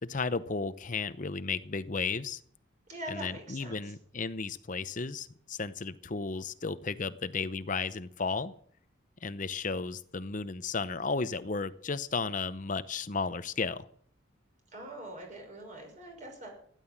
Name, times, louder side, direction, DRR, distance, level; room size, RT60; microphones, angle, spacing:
voice 1, 0.0-2.4 3.1-8.5 9.2-13.9, left 4 dB, 40° left, 13 dB, 0.7 m, -34 dB
voice 2, 2.9-4.0 14.7-16.5, right 1 dB, 40° right, 2 dB, 6.0 m, -43 dB
16.5 x 11.0 x 7.3 m, 0.62 s
head